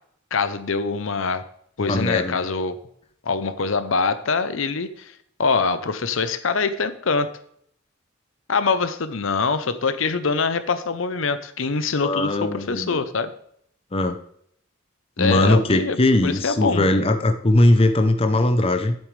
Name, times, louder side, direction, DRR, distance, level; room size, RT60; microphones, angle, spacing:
voice 1, 0.3-1.4 1.8-2.8 3.2-5.1 5.4-7.3 8.5-13.3 15.2-16.9, left 4 dB, 70° left, 12 dB, 0.7 m, -24 dB
voice 2, 1.8-2.4 12.0-13.0 13.9-14.2 15.2-19.0, left 1 dB, 30° left, 7 dB, 0.6 m, -20 dB
10.5 x 8.8 x 3.3 m, 0.66 s
head